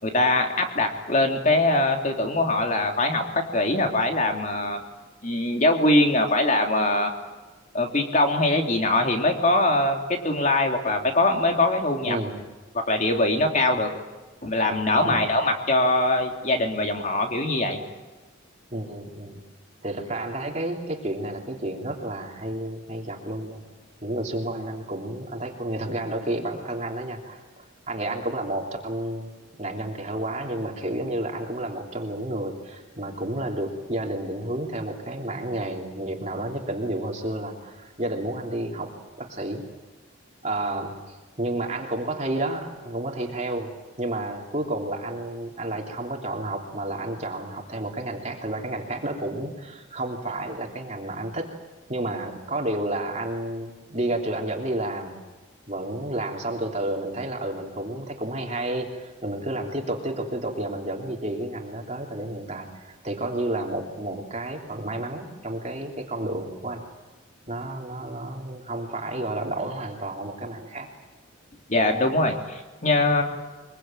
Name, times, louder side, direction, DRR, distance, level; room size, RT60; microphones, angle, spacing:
voice 1, 0.0-4.8 5.2-7.1 7.7-12.2 12.9-13.9 14.4-17.8 71.7-73.2, left 2 dB, 35° left, 3 dB, 3.2 m, -22 dB
voice 2, 12.1-12.4 13.7-13.9 15.0-15.3 18.7-19.4 19.8-23.6 24.0-29.3 29.6-38.9 39.2-39.7 40.4-43.7 44.0-51.5 51.9-55.2 55.7-66.8 67.5-70.9, right 1 dB, 30° right, 1 dB, 3.1 m, -31 dB
24.5 x 23.0 x 9.0 m, 1.3 s
head